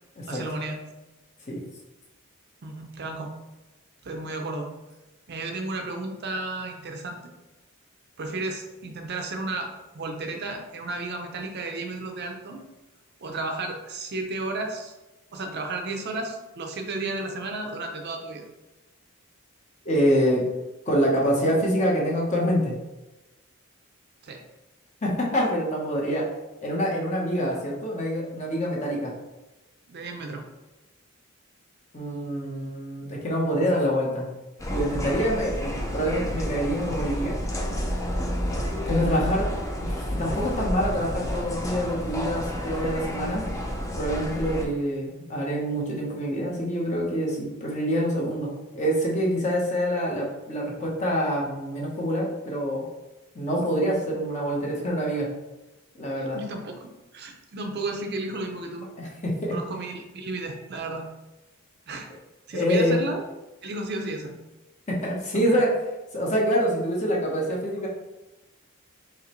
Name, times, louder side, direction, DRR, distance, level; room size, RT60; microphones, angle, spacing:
voice 1, 0.3-0.8 2.6-3.3 4.0-4.7 5.3-7.2 8.2-9.7 9.9-12.6 13.2-14.9 15.3-18.4 24.2-24.4 29.9-30.4 56.2-58.9 59.5-61.1 61.9-62.1 62.5-63.2 63.6-64.3 65.3-65.5, right 2 dB, 50° right, 4 dB, 0.6 m, -33 dB
voice 2, 19.8-20.4 20.9-22.8 25.0-26.2 26.6-29.1 31.9-34.3 34.7-37.4 38.9-39.5 39.8-43.5 44.0-52.8 53.3-55.3 55.9-56.4 59.0-59.6 62.5-63.0 64.9-65.8 66.1-67.9, equal, 35° left, -3 dB, 1.0 m, -26 dB
sound 1, 34.6-44.7, equal, 15° left, 0.5 m, -30 dB
4.9 x 2.9 x 3.1 m, 1.1 s
head